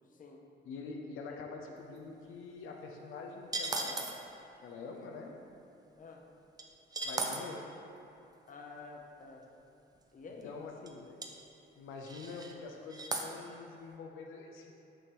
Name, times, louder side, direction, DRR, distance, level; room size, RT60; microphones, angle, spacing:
voice 1, 0.1-0.4 6.0-6.2 8.5-9.4 10.1-10.5, left 4 dB, 40° left, 1 dB, 0.7 m, -49 dB
voice 2, 0.6-4.1 4.6-5.3 7.0-7.6 10.4-11.2 11.8-14.7, left 4 dB, 85° left, 1 dB, 0.6 m, -45 dB
sound 1, 3.5-4.2 6.6-6.7 6.9-7.4 10.0-10.1 10.4-10.5 10.9-11.0 11.2-11.3 12.0-12.5 12.9-13.3, right 2 dB, 20° right, 0.6 m, -36 dB
7.1 x 2.9 x 5.3 m, 2.9 s
cardioid pair, 90°, 20 cm